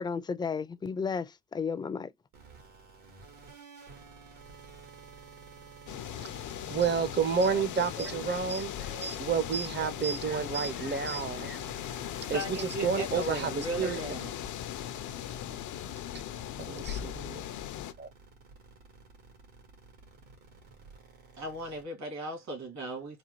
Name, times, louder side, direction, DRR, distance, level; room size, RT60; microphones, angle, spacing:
voice 1, 0.0-2.1, left 5 dB, 15° left, 0.4 m, -33 dB
sound 1, 2.3-21.8, right 4 dB, 85° right, 1.9 m, -52 dB
sound 2, 5.9-17.9, left 11 dB, 75° left, 0.6 m, -38 dB
voice 2, 6.7-11.6 12.3-14.0 15.5-15.6 16.1-16.2 16.7-17.4 18.0-18.1, right 6 dB, 35° right, 0.6 m, -30 dB
voice 3, 12.3-14.3 21.4-23.2, right 1 dB, 65° right, 2.1 m, -37 dB
4.1 x 2.2 x 3.0 m
cardioid pair, 90°, 30 cm